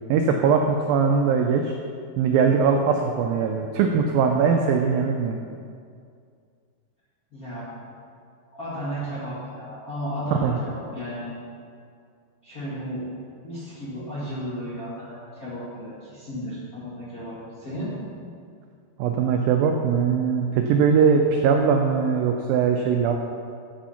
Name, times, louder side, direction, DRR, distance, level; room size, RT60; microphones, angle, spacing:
voice 1, 0.1-1.7 2.2-5.4 10.4-10.6 19.0-23.2, right 6 dB, 85° right, 3 dB, 2.0 m, -21 dB
voice 2, 7.3-7.7 8.5-11.4 12.4-13.1 13.4-17.9, equal, 40° left, -9 dB, 1.3 m, -34 dB
8.8 x 8.0 x 5.7 m, 2.3 s
omnidirectional pair, 4.8 m